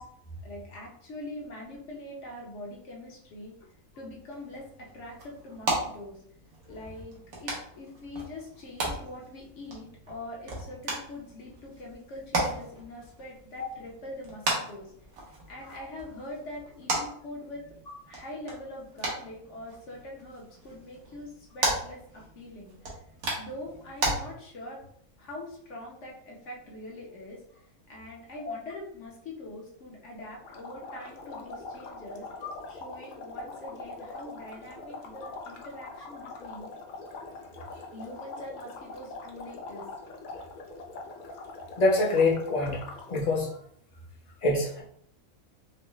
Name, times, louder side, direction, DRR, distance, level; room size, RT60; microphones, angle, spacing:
voice 1, 0.4-3.5 4.0-6.2 6.7-14.9 15.5-17.6 18.1-22.8 23.4-24.8 25.2-32.3 32.7-36.7 37.9-39.9, left 1 dB, 60° left, -2 dB, 1.1 m, -43 dB
sound 1, 4.3-24.1, right 2 dB, 85° right, 1.5 m, -36 dB
sound 2, 30.4-43.3, left 3 dB, 85° left, 0.4 m, -43 dB
voice 2, 41.8-42.8 43.1-43.6 44.4-44.8, left 2 dB, 35° left, -2 dB, 0.8 m, -25 dB
4.6 x 2.0 x 3.1 m, 0.65 s
omnidirectional pair, 1.5 m